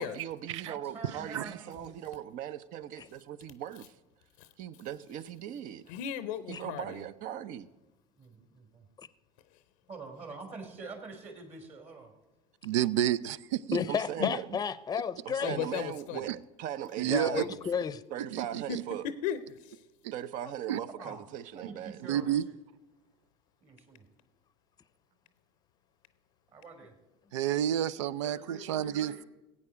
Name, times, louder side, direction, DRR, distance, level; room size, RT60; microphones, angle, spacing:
voice 1, 0.0-3.9 4.6-5.8 6.5-7.7 13.9-14.6 15.2-17.5 18.1-19.1 20.1-22.3, right 10 dB, 60° right, 0.7 m, -39 dB
voice 2, 0.7-1.9 8.2-8.9 9.9-12.1 21.0-21.2 21.5-22.6 23.6-24.1 26.5-27.0 28.2-29.3, right 3 dB, 45° right, 3.0 m, -46 dB
voice 3, 5.9-6.8 13.7-13.8 14.2-14.3 15.4-16.2 17.1-17.5 18.7-18.8 19.2-19.8, left 10 dB, 80° left, 0.6 m, -36 dB
voice 4, 12.6-13.8 17.0-17.4 18.3-18.8 20.7-20.8 22.1-22.4 27.3-29.2, right 11 dB, 90° right, 0.4 m, -30 dB
voice 5, 13.7-15.6 17.0-18.0, left 7 dB, 25° left, 0.6 m, -32 dB
16.5 x 8.6 x 5.0 m
hypercardioid pair, 85°, 15 cm